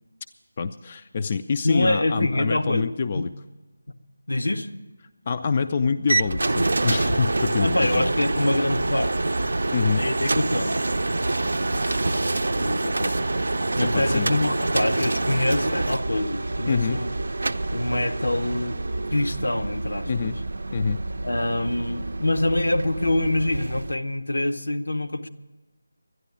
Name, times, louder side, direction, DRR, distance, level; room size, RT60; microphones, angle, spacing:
voice 1, 0.6-3.3 5.3-8.1 9.7-10.0 13.8-14.3 16.7-17.0 20.1-20.4 20.7-21.0, left 5 dB, 35° left, 9 dB, 0.4 m, -26 dB
voice 2, 1.6-3.3 4.3-4.7 7.6-9.1 9.9-10.8 12.5-13.2 13.8-17.1 17.7-18.8 19.1-20.3 21.2-25.3, left 1 dB, 75° left, 6 dB, 0.9 m, -25 dB
sound 1, 6.1-23.9, right 2 dB, 70° right, 0.5 m, -26 dB
12.0 x 10.5 x 8.4 m, 1.1 s
figure-of-eight pair, 160°, 0 cm